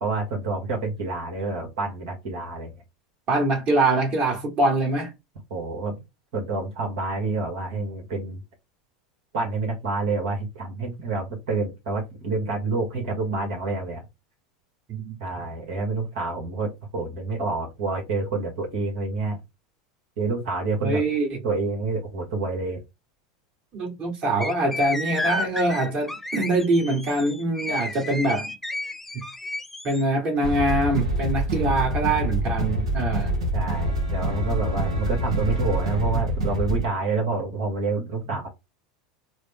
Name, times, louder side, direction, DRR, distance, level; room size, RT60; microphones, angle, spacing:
voice 1, 0.0-2.7 5.5-6.0 6.3-8.4 9.3-14.0 15.2-19.4 20.2-21.0 21.4-22.8 33.5-38.5, right 3 dB, 65° right, 1.3 m, -28 dB
voice 2, 3.3-5.1 14.9-15.2 20.8-21.4 23.7-28.5 29.1-29.2 29.8-33.3, right 2 dB, 40° right, 1.7 m, -24 dB
sound 1, 24.4-30.0, left 2 dB, 5° left, 0.5 m, -32 dB
sound 2, 30.4-36.9, right 1 dB, 85° right, 1.2 m, -26 dB
3.8 x 2.1 x 3.5 m
hypercardioid pair, 90°, 3 cm